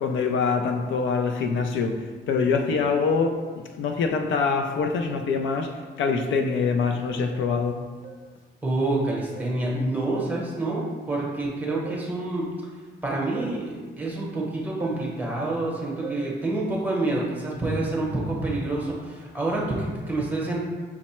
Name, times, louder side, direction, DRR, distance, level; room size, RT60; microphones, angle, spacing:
voice 1, 0.0-7.8, left 5 dB, 75° left, 4 dB, 0.4 m, -25 dB
sound 1, 7.3-7.6 8.0-8.3 9.3-9.7 10.1-10.4 11.8-12.2 13.3-13.7 14.8-15.1 16.0-16.3, right 4 dB, 45° right, 0.6 m, -40 dB
voice 2, 8.6-12.5 13.0-20.6, right 2 dB, 10° right, -4 dB, 0.8 m, -27 dB
5.9 x 2.1 x 4.2 m, 1.5 s
wide cardioid pair, 175°, 20 cm